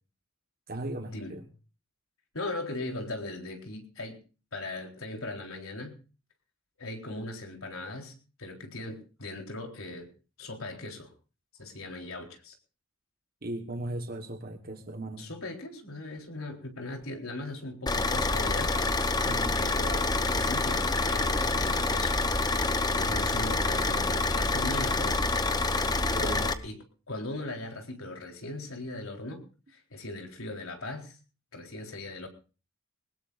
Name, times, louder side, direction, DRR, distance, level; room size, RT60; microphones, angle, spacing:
voice 1, 0.7-1.5 13.4-15.3 19.2-19.6 23.0-23.2 25.7-26.4, right 1 dB, 45° right, 6 dB, 1.3 m, -38 dB
voice 2, 2.3-4.2 4.5-6.0 6.8-8.1 8.4-10.1 10.4-11.1 11.6-12.5 15.2-18.8 19.6-22.2 22.6-25.2 26.0-26.7 27.1-29.4 29.7-31.2 31.5-32.3, left 2 dB, 75° left, 2 dB, 3.9 m, -39 dB
Car / Idling, 17.9-26.5, left 3 dB, 20° left, 0.8 m, -27 dB
22.0 x 19.5 x 2.5 m, 0.36 s
head